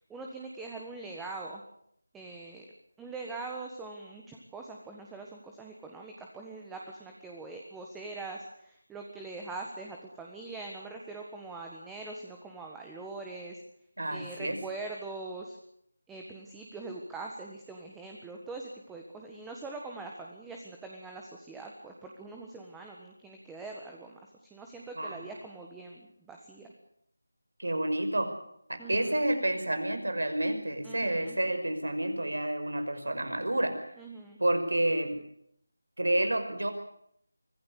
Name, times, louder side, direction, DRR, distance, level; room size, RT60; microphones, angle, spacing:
voice 1, 0.1-1.6 2.1-2.7 3.0-13.6 14.1-15.6 16.1-26.7 28.8-29.2 30.8-31.4 34.0-34.4, right 3 dB, 5° right, 1 dB, 1.5 m, -43 dB
voice 2, 14.0-14.6 25.0-25.2 27.6-28.3 28.7-33.7 34.4-35.1 36.0-36.7, right 1 dB, 80° right, 8 dB, 5.5 m, -29 dB
24.5 x 16.0 x 8.3 m, 0.72 s
figure-of-eight pair, 165°, 0 cm